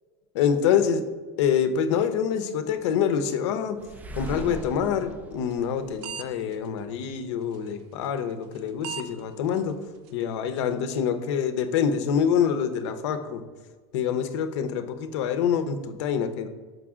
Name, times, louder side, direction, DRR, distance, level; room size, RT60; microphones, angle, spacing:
voice 1, 0.3-1.0 1.4-3.8 4.1-9.8 10.1-13.4 13.9-16.5, left 7 dB, 75° left, 9 dB, 0.7 m, -26 dB
sound 1, 3.8-6.8, right 1 dB, 10° right, 0.3 m, -39 dB
sound 2, 5.5-5.7 6.0-6.2 6.5-6.6 7.5-7.7 8.6-8.7 8.8-9.1 9.6-9.7 10.1-10.2 10.6-10.7, right 7 dB, 60° right, 0.6 m, -35 dB
6.2 x 5.3 x 3.6 m, 1.4 s
supercardioid pair, 150°, 15 cm